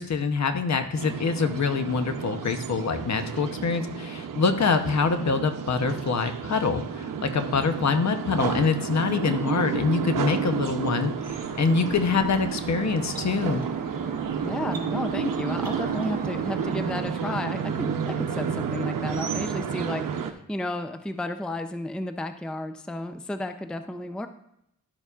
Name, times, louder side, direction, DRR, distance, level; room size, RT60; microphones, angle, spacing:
voice 1, 0.0-13.6, left 5 dB, 55° left, 8 dB, 0.8 m, -25 dB
sound 1, 1.0-20.3, right 7 dB, 75° right, 0.7 m, -31 dB
sound 2, 11.3-17.0, right 3 dB, 30° right, 1.4 m, -43 dB
voice 2, 14.4-24.3, left 1 dB, 5° left, 8 dB, 0.5 m, -32 dB
11.5 x 6.7 x 2.4 m, 0.77 s
cardioid pair, 80°, 33 cm